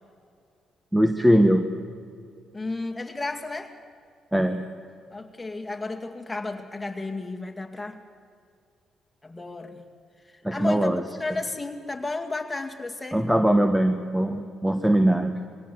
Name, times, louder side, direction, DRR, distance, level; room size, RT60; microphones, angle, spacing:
voice 1, 0.9-1.7 4.3-4.6 10.4-11.0 13.1-15.4, right 1 dB, 5° right, 7 dB, 1.3 m, -21 dB
voice 2, 2.5-3.8 5.1-8.0 9.2-9.8 10.2-10.9 11.2-13.2, left 3 dB, 15° left, 4 dB, 2.1 m, -33 dB
22.0 x 17.0 x 7.8 m, 2.3 s
cardioid pair, 90°, 0 cm